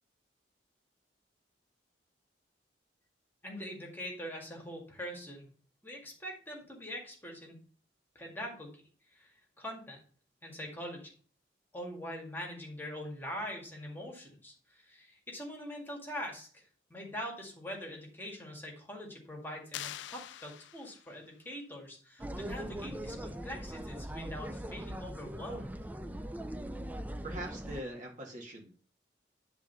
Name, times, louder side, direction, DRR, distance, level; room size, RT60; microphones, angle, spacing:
voice 1, 3.4-5.5 5.8-7.6 8.2-8.8 9.1-10.0 10.4-11.1 11.7-16.6 16.9-25.7, equal, 10° left, 0 dB, 2.0 m, -43 dB
sound 1, 19.7-21.3, left 12 dB, 75° left, 0.3 m, -44 dB
sound 2, 22.2-27.8, right 1 dB, 10° right, 0.4 m, -41 dB
voice 2, 27.2-28.7, right 1 dB, 45° right, 0 dB, 1.9 m, -42 dB
10.0 x 3.6 x 5.6 m, 0.42 s
head